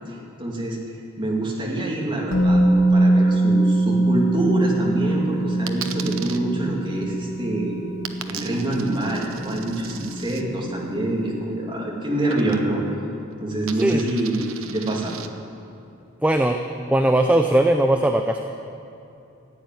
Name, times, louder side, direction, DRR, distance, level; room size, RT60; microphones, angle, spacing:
voice 1, 0.4-0.8 1.2-7.8 8.3-12.8 13.4-15.2, right 1 dB, 20° right, -3 dB, 2.5 m, -26 dB
Musical instrument, 2.3-10.2 10.5-10.7, right 2 dB, 65° left, 1.6 m, -22 dB
Coin (dropping), 5.7-6.4 8.1-10.4 12.3-12.9 13.2-15.3, right 9 dB, 75° right, 0.8 m, -37 dB
voice 2, 16.2-16.6 16.9-18.4, right 1 dB, 5° right, 4 dB, 0.5 m, -19 dB
14.5 x 8.6 x 9.4 m, 2.7 s
head